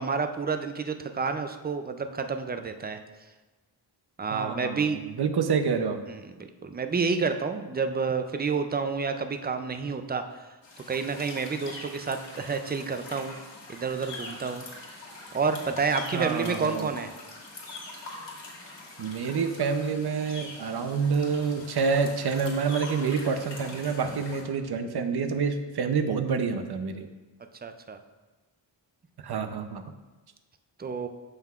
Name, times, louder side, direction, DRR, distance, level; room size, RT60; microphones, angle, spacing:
voice 1, 0.0-3.0 4.2-5.0 6.1-10.6 10.9-13.4 13.7-14.8 15.3-17.1 27.6-28.0 30.8-31.1, right 5 dB, 25° right, 8 dB, 0.3 m, -29 dB
voice 2, 4.3-4.9 5.2-6.0 16.1-16.9 19.0-27.1 29.2-29.8, right 5 dB, 60° right, 8 dB, 0.6 m, -27 dB
sound 1, 10.6-24.4, left 2 dB, 70° left, 1.8 m, -43 dB
13.0 x 5.6 x 2.4 m, 1.2 s
wide cardioid pair, 175°, 45 cm